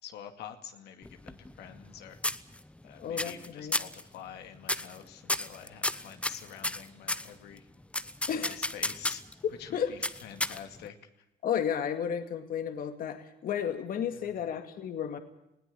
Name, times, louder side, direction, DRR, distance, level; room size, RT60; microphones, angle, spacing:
voice 1, 0.0-2.2 2.8-7.7 8.3-9.2 9.6-11.0 14.2-14.3, left 9 dB, 80° left, 6 dB, 2.4 m, -47 dB
sound 1, 1.0-1.9 2.2-2.8 3.2-3.5 3.7-4.0 4.6-5.0 5.3-7.3 7.9-9.3 10.0-10.9, left 1 dB, 5° left, 1.0 m, -32 dB
voice 2, 3.0-3.8 8.3-8.6 9.4-9.9 11.4-15.2, left 8 dB, 60° left, 8 dB, 2.2 m, -33 dB
20.0 x 17.5 x 8.7 m, 0.85 s
cardioid pair, 110°, 17 cm